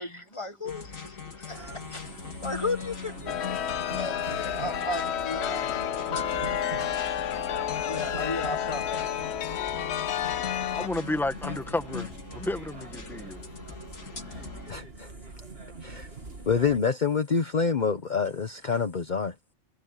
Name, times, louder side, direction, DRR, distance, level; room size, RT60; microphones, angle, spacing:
voice 1, 0.0-3.3 3.9-5.8 7.8-9.0, left 2 dB, 25° left, 1.6 m, -35 dB
sound 1, 0.6-14.7, left 5 dB, 85° left, 3.2 m, -41 dB
sound 2, 1.5-16.8, right 4 dB, 50° right, 2.3 m, -44 dB
Chime, 3.3-10.9, left 10 dB, 65° left, 0.9 m, -30 dB
voice 2, 6.6-7.2 9.1-9.2 14.4-15.1 15.8-16.1 16.5-19.3, left 5 dB, 40° left, 1.1 m, -28 dB
voice 3, 10.7-13.4, left 2 dB, ahead, 1.5 m, -32 dB
omnidirectional pair, 1.3 m